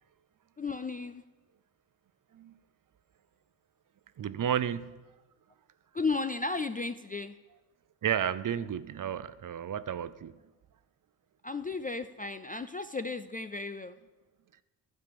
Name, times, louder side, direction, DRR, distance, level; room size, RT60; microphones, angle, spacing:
voice 1, 0.6-1.2 5.9-7.3 11.4-14.0, left 3 dB, 20° left, 11 dB, 0.3 m, -34 dB
voice 2, 4.2-5.0 8.0-10.3, right 9 dB, 40° right, 16 dB, 0.5 m, -32 dB
11.5 x 5.1 x 6.8 m, 1.1 s
supercardioid pair, 45°, 49 cm